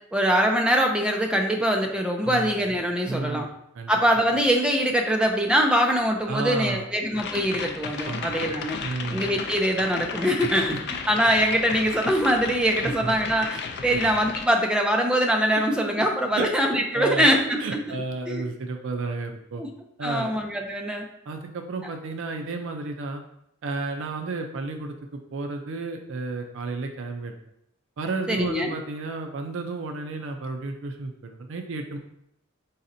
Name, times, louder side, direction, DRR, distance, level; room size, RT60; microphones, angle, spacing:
voice 1, 0.1-3.5 3.9-8.8 9.1-17.8 18.3-18.4 19.6-19.7 20.0-21.1 28.3-28.7, equal, 5° right, 1 dB, 0.4 m, -23 dB
voice 2, 2.2-2.5 3.1-3.5 3.8-3.9 6.3-6.9 8.0-8.3 8.8-9.2 12.8-13.1 13.9-14.1 16.0-16.1 16.3-16.5 16.9-17.3 17.6-19.6 20.0-20.3 21.3-23.2 23.6-27.3 28.0-32.0, right 3 dB, 65° right, 4 dB, 0.4 m, -32 dB
sound 1, 7.1-14.5, left 5 dB, 55° left, 0.4 m, -34 dB
4.1 x 4.1 x 2.6 m, 0.77 s
head